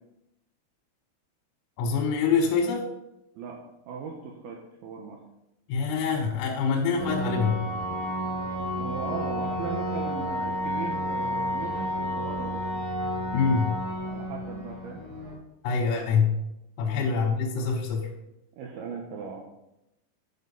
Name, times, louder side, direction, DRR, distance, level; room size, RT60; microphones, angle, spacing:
voice 1, 1.8-2.9 5.7-7.6 13.3-13.8 15.6-16.3 16.8-18.1, left 5 dB, 85° left, 0 dB, 3.7 m, -25 dB
voice 2, 3.9-5.2 8.7-12.6 14.0-15.0 16.8-17.2 18.6-19.4, right 6 dB, 85° right, 1 dB, 2.2 m, -38 dB
sound 1, 7.0-15.3, equal, 35° right, 3.4 m, -31 dB
9.2 x 6.5 x 5.4 m, 0.88 s
omnidirectional pair, 5.8 m